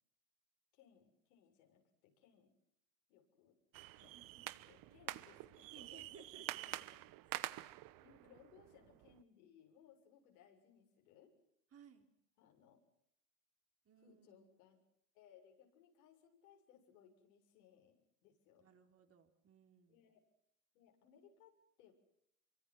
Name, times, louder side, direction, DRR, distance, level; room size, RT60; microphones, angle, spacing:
voice 1, 0.7-2.5 3.1-3.6 4.0-4.2 4.7-7.0 8.0-11.3 12.4-12.8 14.0-14.8 15.1-18.7 19.9-20.2 20.7-21.9, left 8 dB, 70° left, 3 dB, 7.1 m, -66 dB
sound 1, 3.7-9.2, right 17 dB, 45° right, 1.2 m, -48 dB
voice 2, 4.1-4.5 5.7-6.5 7.3-7.4 11.7-12.1 13.9-14.6 18.6-20.0, right 7 dB, 30° right, 5 dB, 3.8 m, -62 dB
27.0 x 24.0 x 6.2 m, 0.75 s
hypercardioid pair, 100°, 45 cm